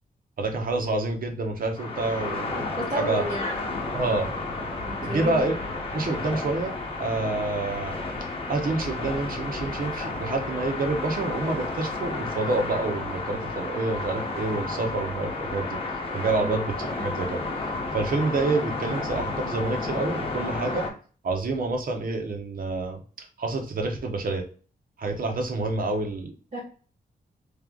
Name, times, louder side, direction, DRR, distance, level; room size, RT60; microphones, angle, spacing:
voice 1, 0.4-2.7 3.0-3.2 3.9-4.3 5.0-5.6 5.9-15.8 16.1-17.4 17.9-20.9 21.2-24.5 25.0-26.3, right 3 dB, 65° right, 3 dB, 1.0 m, -28 dB
sound 1, 1.8-20.9, left 3 dB, 35° left, 1.0 m, -32 dB
voice 2, 2.8-3.8 4.8-5.6 16.4-16.6 26.5-26.6, right 1 dB, 40° right, -9 dB, 1.9 m, -31 dB
3.3 x 3.0 x 3.7 m, 0.40 s
wide cardioid pair, 125°, 16 cm